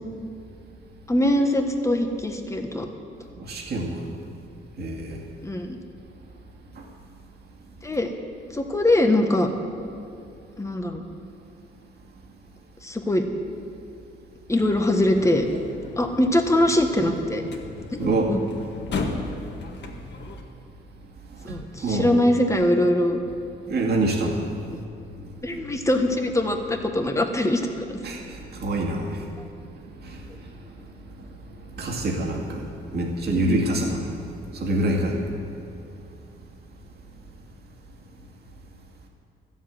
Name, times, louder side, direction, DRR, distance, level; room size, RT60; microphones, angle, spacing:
voice 1, 1.1-2.9 5.4-5.8 7.8-8.1 8.5-9.5 10.6-11.0 12.8-13.2 14.5-15.5 16.0-17.4 17.9-18.4 21.4-23.2 25.4-28.0 33.3-33.6, left 1 dB, 15° left, 4 dB, 1.4 m, -22 dB
voice 2, 3.4-4.1 4.8-5.2 6.7-6.9 18.0-18.3 21.3-22.1 23.7-24.5 28.0-29.3 29.8-30.7 31.6-32.7 32.9-34.2 34.5-35.2, right 1 dB, 55° right, 0 dB, 2.2 m, -26 dB
sound 1, 14.6-20.4, left 3 dB, 60° left, 1.6 m, -35 dB
13.0 x 7.5 x 9.1 m, 2.5 s
cardioid pair, 90°, 20 cm